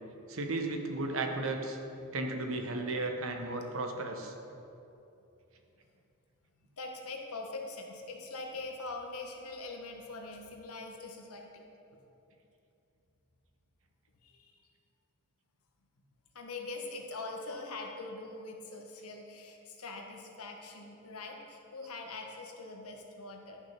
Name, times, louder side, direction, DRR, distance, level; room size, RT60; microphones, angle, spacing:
voice 1, 0.3-1.8 2.1-4.3, right 2 dB, 70° right, 4 dB, 1.0 m, -34 dB
voice 2, 6.8-11.7 14.2-14.6 16.3-23.6, left 3 dB, 85° left, 2 dB, 1.3 m, -43 dB
11.0 x 6.2 x 5.8 m, 2.8 s
head